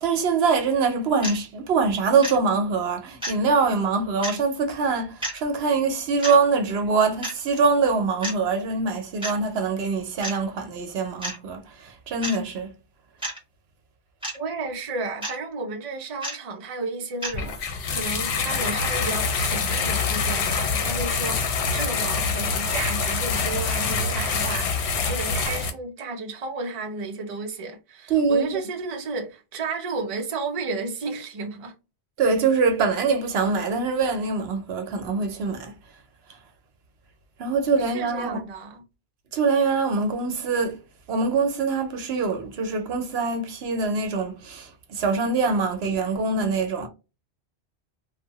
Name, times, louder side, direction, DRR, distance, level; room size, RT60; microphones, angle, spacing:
voice 1, 0.0-12.7 28.1-28.6 32.2-35.7 37.4-38.4 39.3-40.8 41.1-46.9, right 4 dB, 70° right, 0.8 m, -24 dB
sound 1, 1.2-1.3 2.2-2.4 3.2-3.4 4.2-4.3 5.2-5.4 6.2-6.3 7.2-7.4 8.2-8.3 9.2-9.4 10.2-10.4 11.2-11.3 12.2-12.4 13.2-13.4 14.2-14.4 15.2-15.3 16.2-16.3 17.2-17.4, right 1 dB, 5° right, 1.1 m, -30 dB
voice 2, 14.3-31.7 37.8-38.8, right 3 dB, 40° right, 0.5 m, -33 dB
sound 2, 17.3-25.7, left 4 dB, 75° left, 0.9 m, -25 dB
2.6 x 2.2 x 2.8 m
omnidirectional pair, 1.1 m